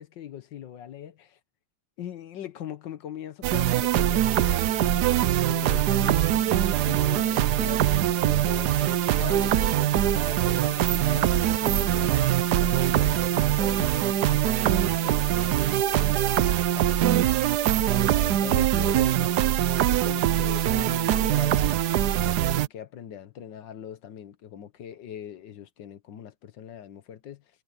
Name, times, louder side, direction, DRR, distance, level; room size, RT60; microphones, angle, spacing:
voice 1, 0.0-1.4 2.0-8.8 9.2-17.1 18.2-19.5 19.8-27.4, left 9 dB, 65° left, 1.7 m, -41 dB
sound 1, 3.4-22.7, right 12 dB, 65° right, 1.1 m, -23 dB
omnidirectional pair, 2.1 m